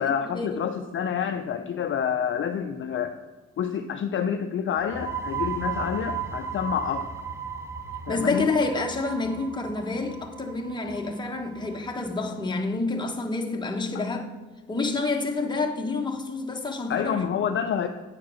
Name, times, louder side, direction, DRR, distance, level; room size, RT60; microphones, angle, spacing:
voice 1, 0.0-3.2 3.6-7.1 8.1-8.5 13.9-14.0 16.9-17.9, left 8 dB, 45° left, 0.5 m, -28 dB
sound 1, 4.8-12.2, right 6 dB, 10° right, 0.7 m, -35 dB
voice 2, 8.1-14.3 14.7-17.2, left 3 dB, 15° left, 1.1 m, -28 dB
9.4 x 4.7 x 6.3 m
cardioid pair, 115°, 29 cm